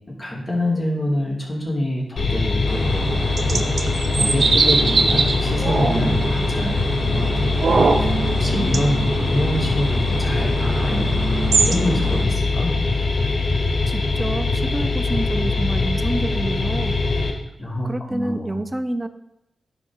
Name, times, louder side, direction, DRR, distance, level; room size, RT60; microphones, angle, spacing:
voice 1, 0.1-3.6 4.2-7.5 8.0-8.1 8.4-11.1 11.4-12.8 17.6-18.6, left 1 dB, 35° left, -2 dB, 2.6 m, -26 dB
sound 1, 2.2-17.3, left 3 dB, 65° left, 1.6 m, -22 dB
sound 2, 2.7-12.2, right 4 dB, 65° right, 0.8 m, -23 dB
voice 2, 13.9-17.0 17.8-19.1, right 1 dB, 20° right, 11 dB, 0.7 m, -28 dB
9.8 x 3.7 x 6.4 m, 0.86 s
cardioid pair, 55°, 0 cm